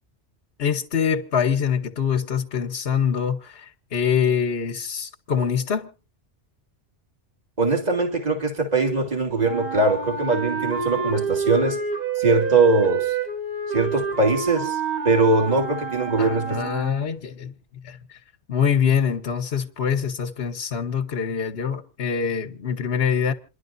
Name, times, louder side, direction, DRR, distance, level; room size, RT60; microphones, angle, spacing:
voice 1, 0.6-5.9 16.2-17.5 17.8-18.0 18.5-23.3, left 7 dB, 60° left, 1.2 m, -24 dB
voice 2, 7.6-11.8 12.2-13.2 13.7-14.8 15.0-16.6, right 3 dB, 35° right, 2.3 m, -21 dB
Wind instrument woodwind instrument, 9.4-17.1, right 5 dB, 60° right, 5.1 m, -28 dB
28.0 x 11.5 x 2.6 m
omnidirectional pair, 1.2 m